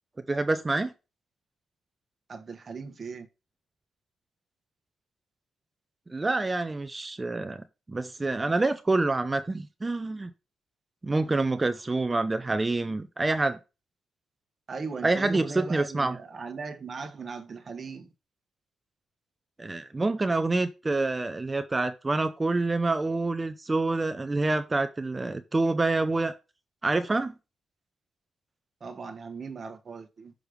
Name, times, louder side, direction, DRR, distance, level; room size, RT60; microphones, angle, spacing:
voice 1, 0.3-0.9 6.1-10.3 11.0-13.6 15.0-16.2 19.6-26.3 26.8-27.3, right 2 dB, 25° right, 0.5 m, -27 dB
voice 2, 2.3-3.3 14.7-18.1 28.8-30.3, right 4 dB, 45° right, 1.1 m, -38 dB
6.3 x 3.3 x 5.0 m
cardioid pair, 75°, 0 cm